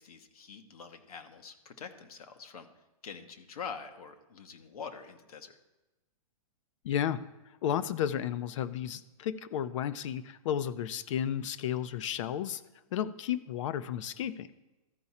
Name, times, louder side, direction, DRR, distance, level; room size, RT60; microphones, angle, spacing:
voice 1, 0.0-2.7 3.0-5.6, left 6 dB, 80° left, 6 dB, 1.2 m, -45 dB
voice 2, 6.8-7.2 7.6-12.6 12.9-14.5, left 10 dB, 55° left, 14 dB, 0.6 m, -33 dB
14.0 x 4.7 x 4.2 m, 1.0 s
hypercardioid pair, 135°, 19 cm